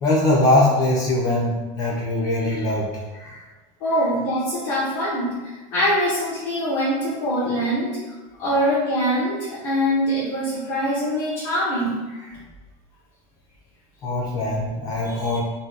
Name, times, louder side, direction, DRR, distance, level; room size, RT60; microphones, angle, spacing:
voice 1, 0.0-3.4 12.1-12.3 14.0-15.4, left 1 dB, 20° left, -5 dB, 0.4 m, -22 dB
voice 2, 3.8-7.9 8.4-11.9, equal, 50° left, -8 dB, 0.7 m, -23 dB
2.6 x 2.1 x 3.7 m, 1.2 s
supercardioid pair, 180°, 17 cm